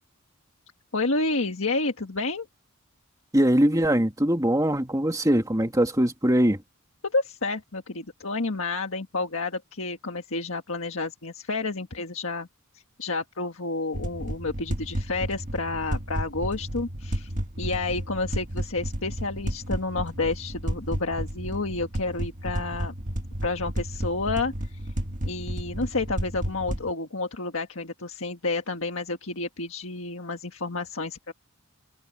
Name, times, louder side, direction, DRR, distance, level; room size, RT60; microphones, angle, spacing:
voice 1, 0.9-2.5 7.0-12.5 12.7-17.3 17.6-22.9 23.4-24.8 25.2-31.3, left 3 dB, 70° left, 1.6 m, -30 dB
voice 2, 3.3-6.6, right 1 dB, 15° right, 2.2 m, -22 dB
sound 1, 13.9-26.9, equal, 35° right, 1.6 m, -32 dB
head